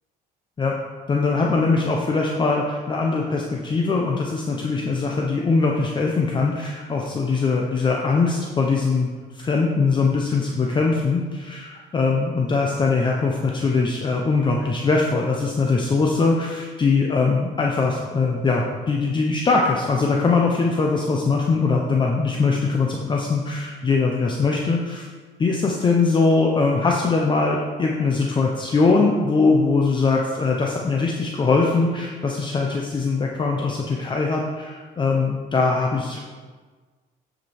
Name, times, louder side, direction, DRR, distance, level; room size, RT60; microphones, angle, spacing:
voice 1, 1.1-25.1 25.4-36.2, left 4 dB, 30° left, 0 dB, 0.9 m, -21 dB
9.6 x 5.2 x 4.4 m, 1.4 s
cardioid pair, 110°, 17 cm